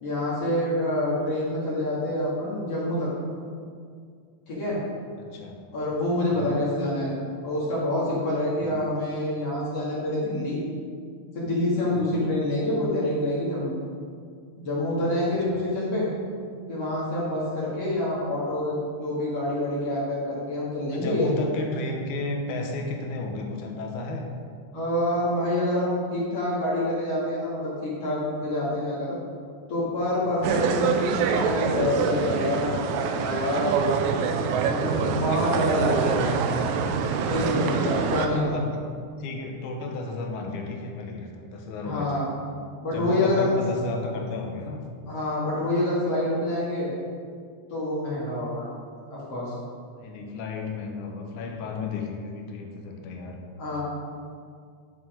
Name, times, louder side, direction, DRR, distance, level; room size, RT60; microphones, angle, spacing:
voice 1, 0.0-3.1 4.5-4.8 5.7-7.1 7.4-10.6 11.3-13.8 14.6-16.1 16.7-21.3 24.7-29.2 29.7-33.7 34.6-36.3 37.2-38.6 41.8-42.3 42.8-43.6 45.1-46.9 47.7-48.7 49.1-49.5 53.6-53.8, left 1 dB, 55° left, -8 dB, 3.1 m, -27 dB
voice 2, 5.2-5.6 6.3-6.5 8.6-8.8 11.9-12.2 15.5-15.6 20.9-24.3 37.9-38.8 39.2-42.1 42.9-44.8 48.2-48.3 50.0-53.4, left 3 dB, 80° left, 2 dB, 2.6 m, -33 dB
sound 1, 30.4-38.3, right 6 dB, 80° right, 2.0 m, -25 dB
10.0 x 7.3 x 5.1 m, 2.2 s
omnidirectional pair, 3.5 m